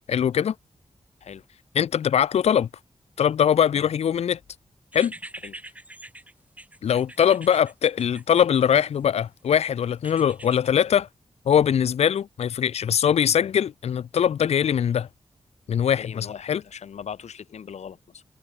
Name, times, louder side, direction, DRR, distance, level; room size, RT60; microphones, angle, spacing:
voice 1, 0.1-0.5 1.8-2.7 3.2-4.4 4.9-5.1 6.8-11.1 11.5-15.1 15.7-16.6, left 8 dB, 70° left, 0.4 m, -22 dB
sound 1, 4.9-9.1 10.0-10.7, right 1 dB, 15° right, 1.7 m, -43 dB
voice 2, 15.9-18.2, left 7 dB, 90° left, 1.1 m, -40 dB
wide cardioid pair, 115°, 11 cm